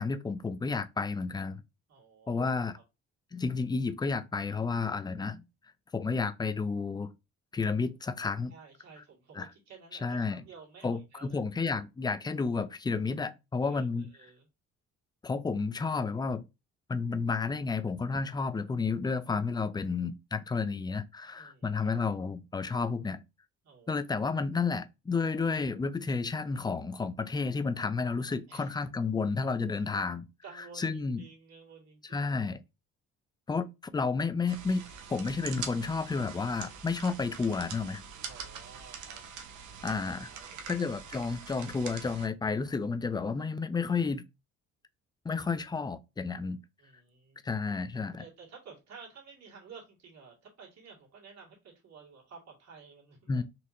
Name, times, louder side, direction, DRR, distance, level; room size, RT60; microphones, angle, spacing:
voice 1, 0.0-1.6 2.3-2.8 3.3-5.4 5.9-7.1 7.5-8.5 9.4-9.5 10.0-10.4 10.8-14.1 15.2-16.5 16.9-23.2 23.9-30.3 30.8-31.2 32.1-32.6 33.5-33.7 33.9-34.8 35.1-38.0 39.8-40.3 40.7-44.2 45.2-46.6 47.4-48.2 53.3-53.4, left 4 dB, 15° left, 0.3 m, -31 dB
voice 2, 1.9-2.4 2.7-2.8 8.5-11.4 13.6-14.5 21.3-22.0 23.6-24.0 28.5-28.7 30.4-32.2 38.3-39.3 40.3-40.9 46.8-47.4 48.2-53.4, right 5 dB, 60° right, 2.0 m, -52 dB
sound 1, 34.5-42.3, right 6 dB, 80° right, 1.0 m, -44 dB
4.2 x 2.7 x 2.7 m
cardioid pair, 90°, 30 cm